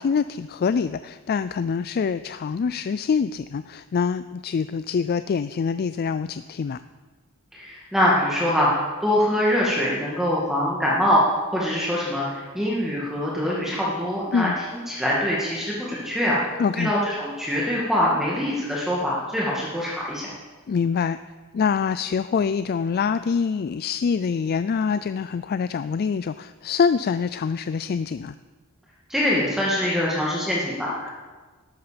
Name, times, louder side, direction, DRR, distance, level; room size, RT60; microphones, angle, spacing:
voice 1, 0.0-6.8 14.3-14.6 16.6-16.9 20.7-21.2 21.5-28.3, left 6 dB, 45° left, 13 dB, 0.3 m, -25 dB
voice 2, 7.5-11.2 11.5-14.5 14.9-20.3 29.1-31.1, left 1 dB, ahead, -5 dB, 2.0 m, -24 dB
13.5 x 13.0 x 5.2 m, 1.4 s
head